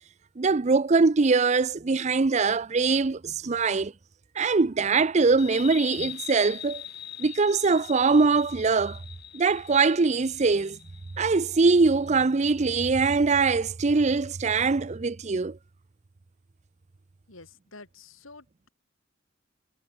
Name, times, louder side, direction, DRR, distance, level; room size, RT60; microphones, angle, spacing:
voice 1, 0.4-3.9 4.4-6.8 7.2-9.0 9.3-10.8 11.2-15.6, right 4 dB, 35° right, 0.5 m, -22 dB
sound 1, 5.4-12.6, left 10 dB, 55° left, 3.0 m, -42 dB
voice 2, 17.3-18.7, left 3 dB, 85° left, 4.7 m, -49 dB
head